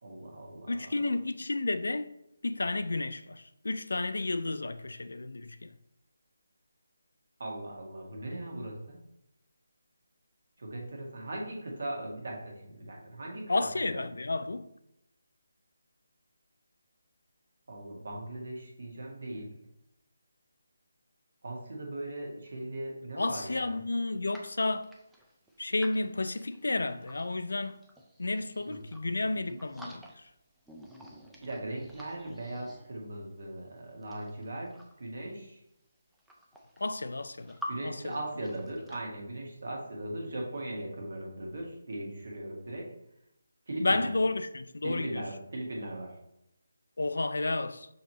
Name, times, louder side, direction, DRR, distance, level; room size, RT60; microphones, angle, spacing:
voice 1, 0.0-0.8 7.4-9.0 10.6-13.8 17.7-19.5 21.4-23.8 28.7-28.8 29.5-29.6 31.4-35.6 37.7-42.9 43.7-44.1 44.8-46.1, right 1 dB, 60° right, 1.4 m, -39 dB
voice 2, 0.7-2.1 2.4-5.7 13.5-14.7 23.2-24.9 25.6-27.8 28.2-30.2 36.8-37.6 37.8-38.2 43.8-45.2 47.0-47.9, left 2 dB, 75° left, 0.3 m, -31 dB
sound 1, 24.3-27.3 27.6-29.2 29.5-30.4 30.7-33.2 33.9-35.1 35.8-35.9 36.1-37.7 38.0-39.0, equal, 5° right, 0.4 m, -49 dB
6.3 x 2.9 x 2.9 m
figure-of-eight pair, 155°, 0 cm